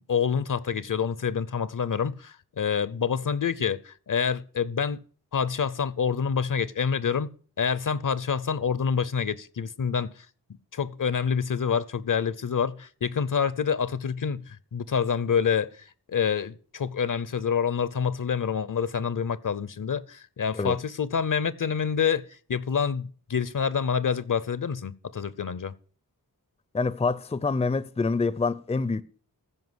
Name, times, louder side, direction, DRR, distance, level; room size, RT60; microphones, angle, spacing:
voice 1, 0.1-5.0 5.3-7.3 7.6-10.3 10.7-25.7, left 6 dB, 55° left, 0.7 m, -27 dB
voice 2, 26.7-29.0, left 4 dB, 15° left, 0.5 m, -26 dB
15.0 x 5.1 x 8.0 m
wide cardioid pair, 65°, 37 cm